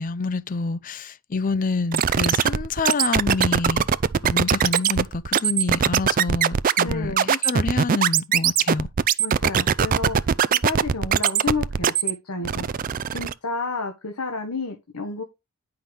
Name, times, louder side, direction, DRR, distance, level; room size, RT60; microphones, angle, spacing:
voice 1, 0.0-3.9 4.2-8.9, left 4 dB, 40° left, 0.5 m, -27 dB
sound 1, 1.9-12.1 12.4-13.3, right 8 dB, 40° right, 0.4 m, -20 dB
voice 2, 6.8-7.3 9.2-12.7 13.1-15.2, left 3 dB, 85° left, 1.4 m, -31 dB
9.7 x 5.7 x 3.2 m
head